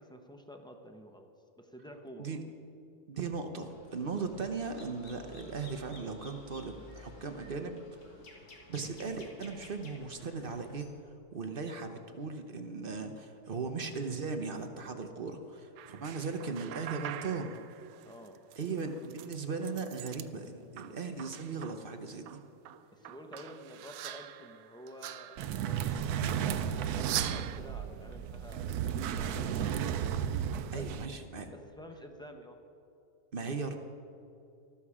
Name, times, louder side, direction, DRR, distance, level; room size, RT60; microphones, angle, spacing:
voice 1, 0.0-2.4 18.0-18.4 22.9-29.8 30.7-30.8 31.5-32.6, equal, 5° left, 4 dB, 0.4 m, -50 dB
voice 2, 3.1-8.0 8.7-10.9 11.3-17.6 18.6-22.4 30.7-31.5 33.3-33.8, right 4 dB, 50° right, 6 dB, 0.7 m, -38 dB
sound 1, 3.6-10.9, left 1 dB, 80° left, 2.5 m, -53 dB
sound 2, 15.8-20.3 20.6-21.9 22.3-25.9 26.8-27.6, right 12 dB, 90° right, 1.2 m, -43 dB
sound 3, 25.4-31.1, right 8 dB, 70° right, 1.0 m, -33 dB
13.5 x 13.0 x 4.9 m, 2.7 s
omnidirectional pair, 1.9 m